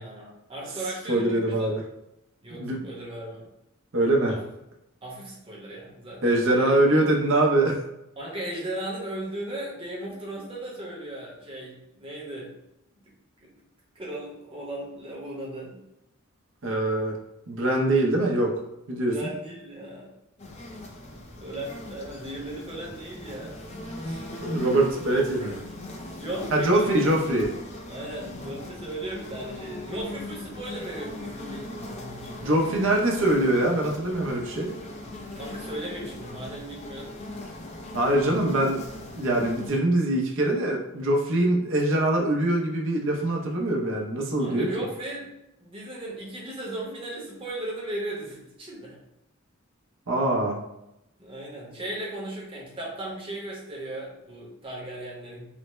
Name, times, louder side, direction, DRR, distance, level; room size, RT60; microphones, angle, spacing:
voice 1, 0.0-1.8 2.4-3.4 4.3-4.4 5.0-6.7 8.2-12.5 13.0-13.1 13.4-13.5 13.9-15.8 19.1-20.1 21.4-23.6 24.0-24.2 25.1-25.6 26.2-27.0 27.9-32.5 35.3-37.2 44.4-49.0 51.2-55.5, right 1 dB, 25° right, -4 dB, 0.8 m, -37 dB
voice 2, 1.1-1.8 2.5-2.9 3.9-4.3 6.2-7.8 16.6-17.1 17.5-18.5 18.9-19.1 24.4-25.6 26.5-27.5 32.4-34.7 37.9-38.9 39.1-44.7 50.1-50.6, right 1 dB, 65° right, 0 dB, 0.6 m, -23 dB
sound 1, 20.4-39.8, left 1 dB, 30° left, 0.4 m, -39 dB
3.3 x 2.1 x 3.0 m, 0.87 s
head